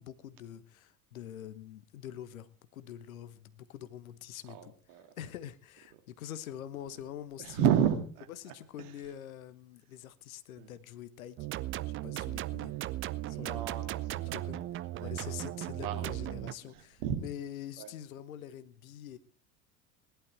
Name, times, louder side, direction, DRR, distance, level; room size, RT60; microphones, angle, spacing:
voice 1, 0.0-4.7 5.2-7.6 8.4-11.4 11.9-12.7 13.3-13.6 14.3-19.2, left 10 dB, 65° left, 1.2 m, -45 dB
voice 2, 4.5-5.0 7.4-8.3 8.8-8.9 10.6-10.7 13.2-14.6 14.9-15.3 15.8-16.1 16.4-17.2 17.8-17.9, right 9 dB, 50° right, 2.4 m, -32 dB
sound 1, 11.4-16.5, right 15 dB, 30° right, 0.6 m, -37 dB
18.5 x 11.5 x 4.5 m
figure-of-eight pair, 80°, 44 cm